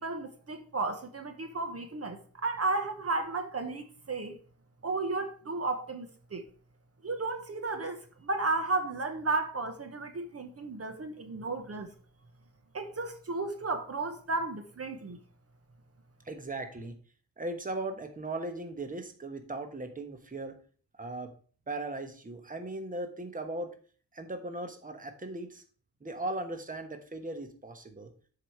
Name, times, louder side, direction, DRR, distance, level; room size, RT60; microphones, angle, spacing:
voice 1, 0.0-4.4 4.8-6.4 7.0-11.9 12.7-15.2, right 3 dB, 40° right, 1.0 m, -33 dB
voice 2, 16.2-17.0 17.4-20.6 21.0-21.3 21.7-23.7 24.1-25.6 26.0-28.1, right 2 dB, 25° right, 1.1 m, -38 dB
7.5 x 5.0 x 4.9 m
wide cardioid pair, 125°, 35 cm